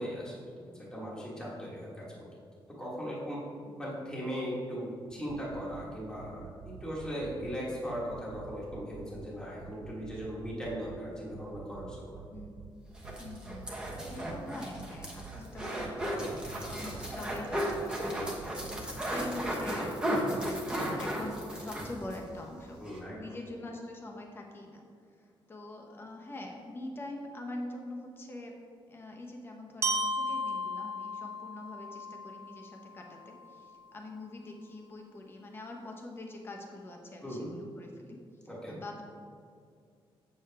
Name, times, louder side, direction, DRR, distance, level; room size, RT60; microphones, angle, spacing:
voice 1, 0.0-2.3 2.8-3.4 3.8-12.2 16.1-16.4 22.8-23.2 37.2-37.5 38.5-38.8, equal, 5° left, -7 dB, 1.3 m, -38 dB
sound 1, 5.1-5.8 6.2-7.6 7.9-9.3 9.6-11.0 11.3-12.7 13.0-14.4 14.7-16.1 16.5-17.8 18.2-18.8, right 9 dB, 85° right, 0.5 m, -48 dB
voice 2, 12.3-12.6 13.2-13.8 14.1-22.8 23.2-24.8 25.5-28.5 28.9-38.2 38.4-39.0, left 1 dB, 25° left, 1 dB, 0.9 m, -44 dB
sound 2, 12.9-22.2 22.5-22.6 22.9-23.0, equal, 10° right, 1.0 m, -35 dB
Glockenspiel, 29.8-33.8, equal, 30° right, 0.5 m, -35 dB
7.9 x 6.8 x 3.4 m, 2.3 s
wide cardioid pair, 175°, 9 cm